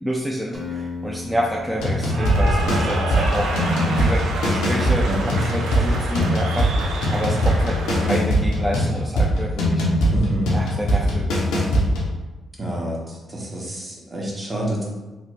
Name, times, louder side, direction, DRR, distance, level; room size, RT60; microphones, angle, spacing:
voice 1, 0.0-9.8 10.5-11.3, equal, 5° right, -3 dB, 0.4 m, -28 dB
Acoustic guitar, 0.5-3.6, left 4 dB, 20° left, 0.7 m, -36 dB
sound 1, 1.8-12.1, equal, 85° left, 0.6 m, -21 dB
Cheering / Applause, 1.8-8.1, right 2 dB, 85° right, 0.4 m, -28 dB
voice 2, 10.1-10.5 12.6-14.8, right 1 dB, 35° right, -2 dB, 0.9 m, -27 dB
3.1 x 2.0 x 3.2 m, 1.1 s
supercardioid pair, 55°, 0 cm